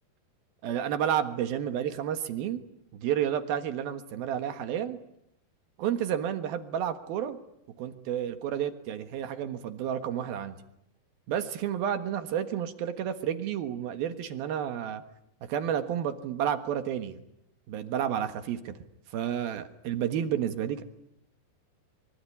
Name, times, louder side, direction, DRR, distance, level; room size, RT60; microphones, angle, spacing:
voice 1, 0.6-2.6 2.9-5.0 5.8-7.4 7.8-10.6 11.3-15.0 15.4-17.2 17.7-18.8 19.1-20.8, right 9 dB, 65° right, 9 dB, 2.8 m, -31 dB
25.0 x 23.5 x 9.8 m, 0.78 s
omnidirectional pair, 5.5 m